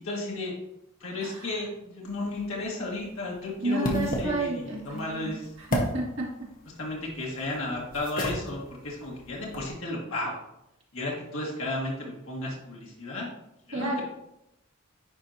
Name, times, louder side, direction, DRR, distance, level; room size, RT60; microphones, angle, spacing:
voice 1, 0.0-0.5 1.0-5.5 6.8-10.4 10.9-13.3 13.7-14.0, left 2 dB, 80° left, -3 dB, 1.6 m, -33 dB
voice 2, 1.2-1.6 3.6-6.5 13.7-14.0, right 2 dB, 65° right, -3 dB, 2.0 m, -31 dB
sound 1, 2.1-9.8, left 1 dB, 40° left, 1.1 m, -36 dB
9.9 x 4.4 x 2.7 m, 0.85 s
head